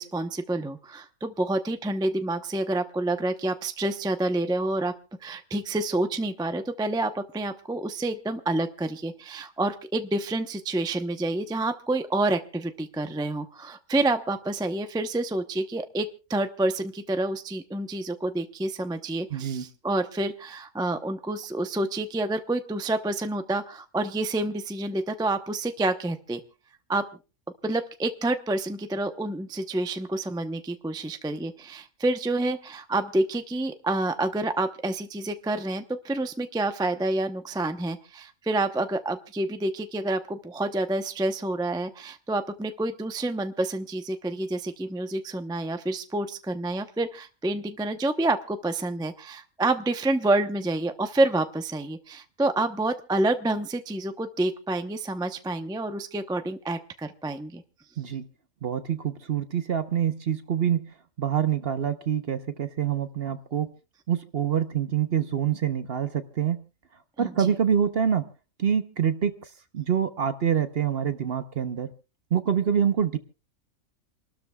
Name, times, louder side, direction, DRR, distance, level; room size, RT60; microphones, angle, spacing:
voice 1, 0.0-4.9 5.2-26.4 26.9-27.0 27.6-57.6 67.2-67.5, right 2 dB, 5° right, 7 dB, 0.5 m, -28 dB
voice 2, 19.3-19.6 58.0-58.3 58.6-60.9 61.2-63.7 64.1-66.6 67.2-68.3 68.6-69.3 69.7-71.9 72.3-73.2, right 8 dB, 50° right, 10 dB, 1.0 m, -26 dB
28.0 x 13.0 x 2.3 m, 0.32 s
omnidirectional pair, 1.5 m